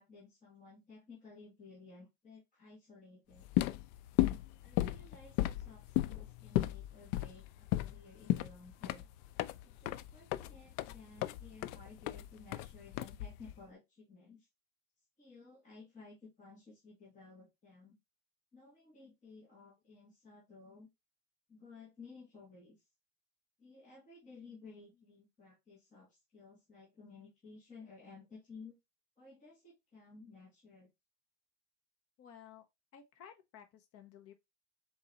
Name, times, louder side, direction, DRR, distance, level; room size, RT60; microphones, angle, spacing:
voice 1, 0.0-3.5 4.6-9.1 9.6-14.5 15.2-17.9 18.5-20.9 21.5-22.8 23.6-28.8 29.2-30.9, left 4 dB, 15° left, 1.2 m, -56 dB
sound 1, 3.4-13.6, left 15 dB, 75° left, 0.5 m, -35 dB
voice 2, 32.2-32.7 32.9-34.3, left 8 dB, 35° left, 0.8 m, -55 dB
4.0 x 3.7 x 2.9 m
cardioid pair, 160°, 44 cm